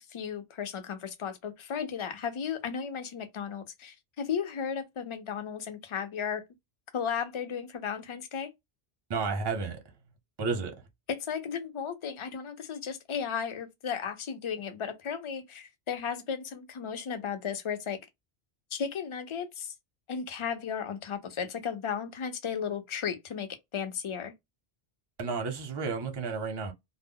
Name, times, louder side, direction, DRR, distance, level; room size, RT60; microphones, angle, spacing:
voice 1, 0.0-6.4 6.9-8.5 11.1-18.0 18.7-19.7 20.1-24.3, left 7 dB, 50° left, 0.3 m, -35 dB
voice 2, 9.1-9.8 10.4-10.9 25.2-26.7, right 4 dB, 35° right, 0.5 m, -32 dB
2.0 x 2.0 x 3.6 m
omnidirectional pair, 1.1 m